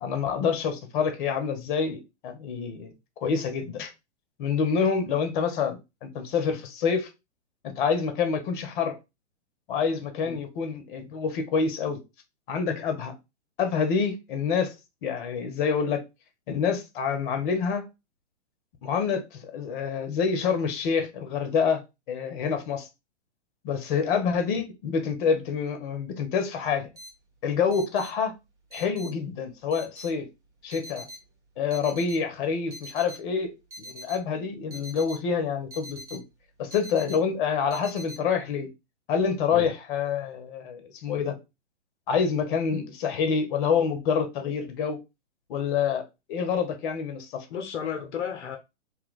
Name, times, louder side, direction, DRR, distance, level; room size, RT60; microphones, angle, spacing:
voice 1, 0.0-2.9 3.2-3.9 4.4-7.1 7.6-9.0 9.7-12.0 12.5-13.1 13.6-14.7 15.0-16.0 16.5-17.8 18.8-21.8 22.1-22.9 23.6-26.9 27.4-28.3 28.7-30.3 30.6-31.1 31.6-36.2 36.6-38.7 39.1-41.4 42.1-45.0 45.5-46.0 46.3-47.5, left 6 dB, 45° left, 0.8 m, -27 dB
sound 1, 27.0-38.2, equal, 10° right, 0.5 m, -44 dB
voice 2, 47.5-48.6, left 7 dB, 75° left, 0.7 m, -33 dB
2.8 x 2.2 x 3.8 m
hypercardioid pair, 130°, 35 cm